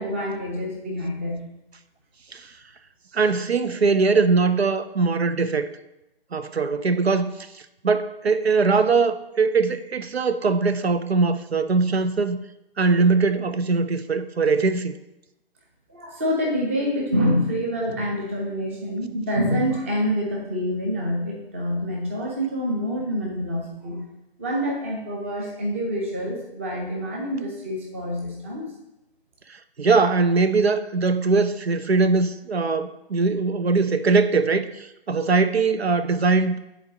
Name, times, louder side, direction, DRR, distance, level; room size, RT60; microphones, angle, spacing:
voice 1, 0.0-1.5 15.9-24.0 24.4-28.7, equal, 15° right, -1 dB, 0.6 m, -26 dB
voice 2, 3.1-5.7 6.3-12.4 12.8-14.9 29.5-36.6, right 4 dB, 80° right, 11 dB, 0.6 m, -21 dB
10.0 x 4.1 x 2.8 m, 0.89 s
figure-of-eight pair, 145°, 31 cm